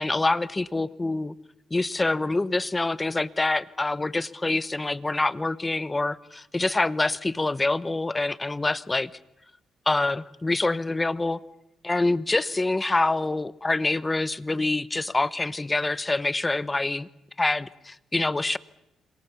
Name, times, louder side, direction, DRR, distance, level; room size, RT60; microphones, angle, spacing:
voice 1, 0.0-1.3 1.7-9.1 9.9-11.4 11.8-17.1 17.4-18.6, left 2 dB, 20° left, 17 dB, 0.9 m, -26 dB
28.5 x 25.5 x 7.1 m, 0.83 s
cardioid pair, 90°, 0 cm